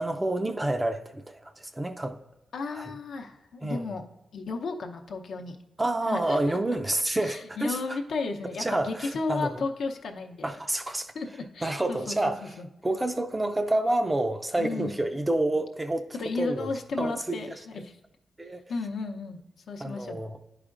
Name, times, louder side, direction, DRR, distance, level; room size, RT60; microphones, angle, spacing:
voice 1, 0.0-2.2 2.7-3.0 3.6-4.0 5.8-8.0 8.6-9.6 10.4-11.1 11.6-12.5 12.8-16.1 16.3-16.7 17.0-17.6 18.4-18.6 19.8-20.4, right 1 dB, 20° right, 0.5 m, -28 dB
voice 2, 2.5-4.0 4.3-5.6 6.1-6.6 7.3-10.5 11.1-12.3 12.6-12.7 14.6-15.0 16.1-17.5 17.7-18.0 18.7-19.4 19.7-20.2, left 4 dB, 75° left, 0.7 m, -33 dB
10.5 x 4.9 x 2.5 m
cardioid pair, 85°, 0 cm